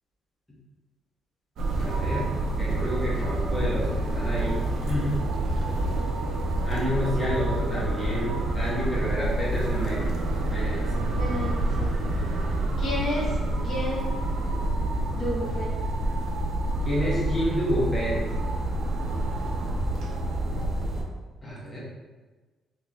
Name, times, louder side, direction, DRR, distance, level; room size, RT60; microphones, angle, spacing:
sound 1, 1.6-21.0, right 1 dB, 70° right, 0.5 m, -27 dB
voice 1, 1.8-2.3 2.6-5.2 6.6-10.1 10.5-11.1 16.8-18.2 21.4-21.8, equal, 15° left, -7 dB, 1.0 m, -29 dB
voice 2, 11.2-11.9 12.8-14.0 15.1-15.7, left 1 dB, 60° left, -7 dB, 1.5 m, -31 dB
3.6 x 2.9 x 2.6 m, 1.3 s
cardioid pair, 90°, 0 cm